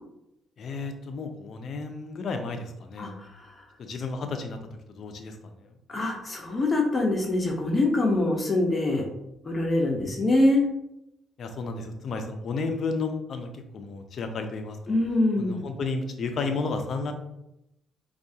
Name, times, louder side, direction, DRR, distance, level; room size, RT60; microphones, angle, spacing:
voice 1, 0.6-3.2 3.8-4.6 5.0-5.7 11.4-14.8 15.4-17.1, left 4 dB, 60° left, 6 dB, 0.5 m, -32 dB
voice 2, 5.9-9.0 9.5-10.6 14.9-15.6, left 2 dB, 30° left, 0 dB, 0.8 m, -24 dB
4.5 x 2.4 x 2.7 m, 0.84 s
cardioid pair, 90°, 0 cm